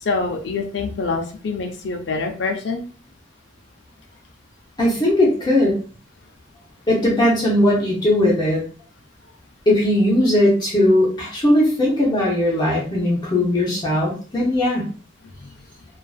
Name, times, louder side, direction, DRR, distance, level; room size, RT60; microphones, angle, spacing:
voice 1, 0.0-2.8 15.3-15.4, left 4 dB, 80° left, 3 dB, 0.5 m, -25 dB
voice 2, 4.8-5.8 6.9-8.6 9.7-14.9, left 1 dB, 25° left, -4 dB, 0.6 m, -18 dB
2.4 x 2.3 x 2.3 m, 0.39 s
head